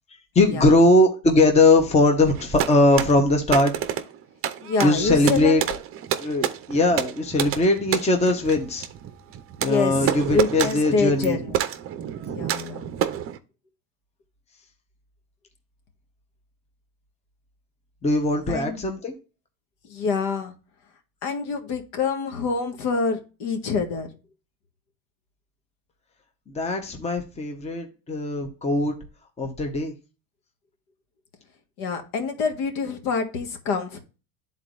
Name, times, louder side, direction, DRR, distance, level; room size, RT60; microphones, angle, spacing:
voice 1, 0.3-3.7 4.8-5.6 6.2-8.9 9.6-11.4 18.0-19.1 26.5-28.9 29.4-29.9, left 2 dB, 15° left, 5 dB, 1.0 m, -20 dB
sound 1, 2.3-13.4, right 10 dB, 30° right, 0.7 m, -29 dB
voice 2, 4.6-5.5 9.6-11.5 12.3-12.9 18.5-18.8 19.9-20.5 21.2-24.1 31.8-34.0, left 4 dB, 65° left, 5 dB, 1.6 m, -26 dB
10.5 x 4.1 x 2.5 m, 0.32 s
supercardioid pair, 125°, 43 cm